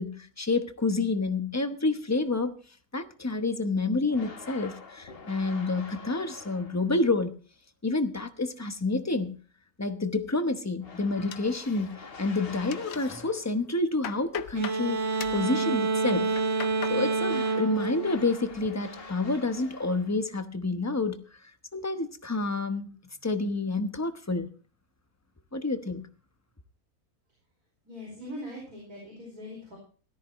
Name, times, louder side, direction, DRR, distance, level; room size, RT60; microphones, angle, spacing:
voice 1, 0.0-2.6 2.9-7.4 7.8-9.4 9.8-16.3 16.9-21.2 21.7-23.0 23.2-24.5 25.5-26.1, left 3 dB, 15° left, 0.7 m, -29 dB
sound 1, 4.1-7.1 10.8-13.7 17.3-20.4, left 4 dB, 40° left, 1.5 m, -46 dB
sound 2, 11.3-12.1 12.4-13.2 13.6-14.8 15.2-15.5 16.1-17.0 17.4-17.9 18.2-18.7, left 9 dB, 70° left, 1.2 m, -41 dB
sound 3, 14.6-19.0, right 4 dB, 60° right, 1.8 m, -28 dB
voice 2, 27.9-29.8, left 1 dB, 85° right, 5.5 m, -41 dB
17.5 x 13.5 x 3.1 m
omnidirectional pair, 1.6 m